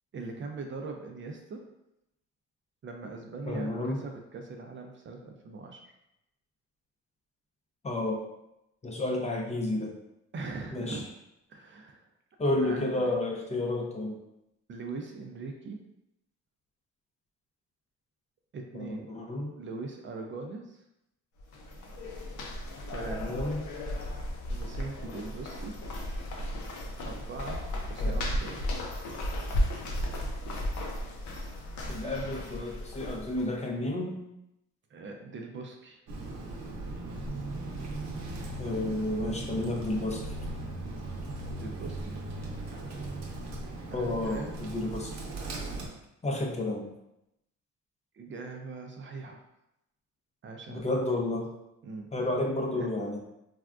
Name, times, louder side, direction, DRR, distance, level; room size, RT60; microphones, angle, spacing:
voice 1, 0.1-1.6 2.8-5.8 10.3-11.0 11.5-12.0 12.6-13.1 14.7-15.8 18.5-19.1 19.6-20.8 22.9-23.4 24.5-25.8 27.0-28.6 34.9-36.0 41.5-42.1 43.9-44.6 48.1-49.4 50.4-50.9 51.8-52.1 52.6-53.0, right 3 dB, 40° right, 3 dB, 0.4 m, -41 dB
voice 2, 3.5-4.0 7.8-8.2 8.8-9.9 10.7-11.0 12.4-14.2 18.7-19.5 23.2-23.6 28.0-28.2 31.9-34.2 38.6-40.2 43.9-45.1 46.2-46.9 50.7-51.5 52.1-53.2, left 2 dB, 25° left, 0 dB, 0.5 m, -31 dB
sound 1, 21.4-33.5, left 1 dB, 75° left, 0.6 m, -34 dB
Bird, 36.1-45.9, right 2 dB, 65° right, 0.8 m, -38 dB
3.4 x 2.3 x 2.4 m, 0.86 s
cardioid pair, 90°, 30 cm